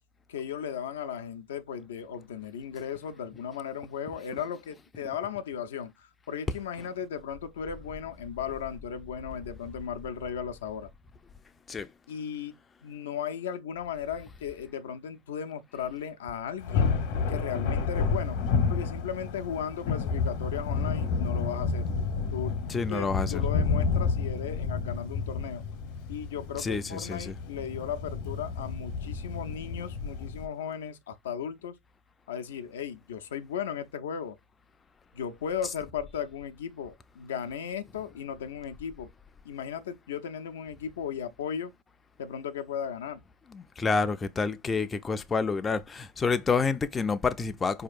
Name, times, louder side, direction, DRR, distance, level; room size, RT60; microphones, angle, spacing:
voice 1, 0.3-10.9 12.1-12.5 12.8-17.0 17.3-18.4 18.7-21.9 22.3-25.6 26.1-31.8 32.3-34.4 35.1-39.1 39.4-41.7 42.2-43.2, left 8 dB, 85° left, 0.4 m, -36 dB
Thunder, 16.6-30.5, left 5 dB, 65° left, 0.8 m, -30 dB
voice 2, 22.7-23.4 26.6-27.3 43.5-47.8, left 4 dB, 20° left, 0.3 m, -28 dB
4.4 x 2.8 x 2.4 m
hypercardioid pair, 115°, 0 cm